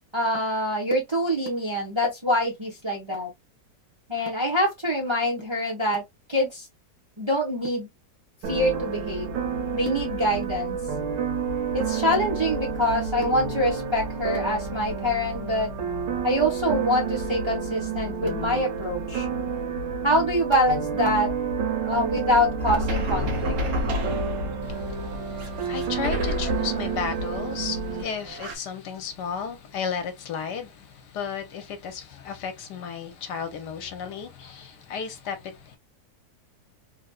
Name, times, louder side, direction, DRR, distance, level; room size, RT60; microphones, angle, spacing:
voice 1, 0.1-3.3 4.1-6.0 6.3-6.7 7.2-7.9 8.5-9.3 9.7-10.8 11.7-15.7 16.2-19.3 20.0-21.3 21.9-23.5, equal, 20° right, 0.8 m, -25 dB
sound 1, 8.4-28.0, right 5 dB, 85° right, 1.5 m, -30 dB
sound 2, 22.6-28.6, left 1 dB, 60° right, 1.3 m, -31 dB
voice 2, 24.6-35.8, left 6 dB, 75° left, 1.2 m, -34 dB
3.4 x 2.5 x 2.3 m
omnidirectional pair, 1.9 m